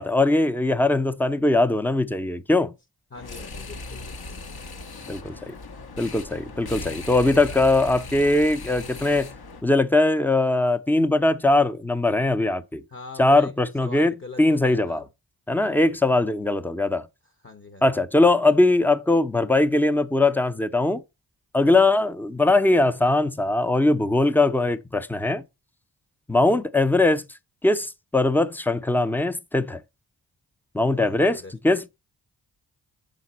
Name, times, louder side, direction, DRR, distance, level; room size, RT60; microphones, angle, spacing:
voice 1, 0.0-2.7 5.1-5.5 6.0-9.3 9.6-12.8 13.2-14.1 14.4-15.0 15.5-17.1 17.8-21.0 21.5-25.4 26.3-27.2 27.6-29.8 30.7-31.9, left 2 dB, 5° left, 0.5 m, -21 dB
sound 1, 3.1-9.6, left 3 dB, 60° left, 1.0 m, -38 dB
voice 2, 3.1-4.4 12.9-13.5 13.8-15.0 15.6-16.2 17.4-18.0 30.9-31.5, left 3 dB, 30° left, 0.9 m, -42 dB
5.8 x 5.2 x 4.1 m
supercardioid pair, 40°, 43 cm